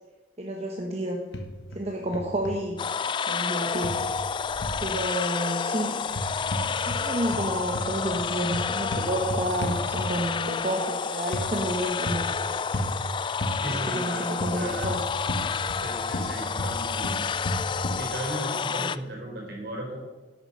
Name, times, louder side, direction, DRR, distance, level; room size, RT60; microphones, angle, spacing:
voice 1, 0.4-1.2 1.7-2.8 3.2-4.0 4.8-6.0 6.8-12.2 13.7-15.0 18.8-18.9, right 1 dB, 35° right, 1 dB, 1.1 m, -30 dB
sound 1, 1.3-1.8 2.1-2.6 3.8-4.8 6.1-7.1 7.3-10.3 11.3-11.5 12.0-12.3 12.7-13.0 13.4-13.6 14.4-15.9 16.1-18.0, equal, 85° left, 1.3 m, -32 dB
sound 2, 2.8-19.0, left 6 dB, 25° left, 0.3 m, -30 dB
voice 2, 13.6-14.9 15.7-17.2 17.9-20.0, right 1 dB, 60° right, -1 dB, 4.5 m, -35 dB
11.0 x 8.5 x 6.3 m, 1.2 s
head